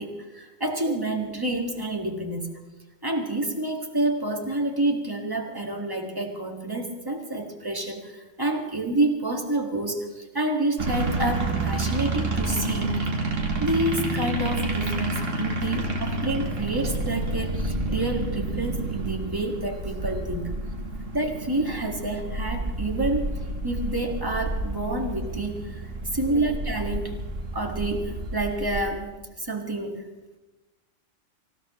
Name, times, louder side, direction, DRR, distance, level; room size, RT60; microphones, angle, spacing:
voice 1, 0.0-2.5 3.0-13.2 13.6-20.5 21.1-27.2 27.5-30.1, right 2 dB, 15° right, 2 dB, 1.9 m, -28 dB
sound 1, 10.8-28.8, right 2 dB, 80° right, 2.3 m, -29 dB
25.5 x 16.0 x 3.1 m, 1.1 s
omnidirectional pair, 1.3 m